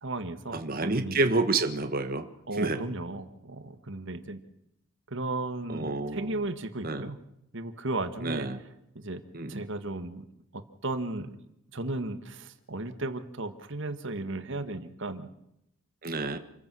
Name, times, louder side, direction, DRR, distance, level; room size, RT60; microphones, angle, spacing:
voice 1, 0.0-1.2 2.5-4.4 5.1-7.2 7.5-8.7 8.9-9.2 9.5-10.3 10.5-11.4 11.7-15.3 16.2-16.3, right 2 dB, 55° right, 10 dB, 1.7 m, -35 dB
voice 2, 0.5-2.3 2.6-2.8 5.7-6.3 6.8-7.1 8.2-8.6 9.3-9.6 16.0-16.4, right 3 dB, 40° right, 8 dB, 1.3 m, -29 dB
27.5 x 15.5 x 6.2 m, 0.81 s
head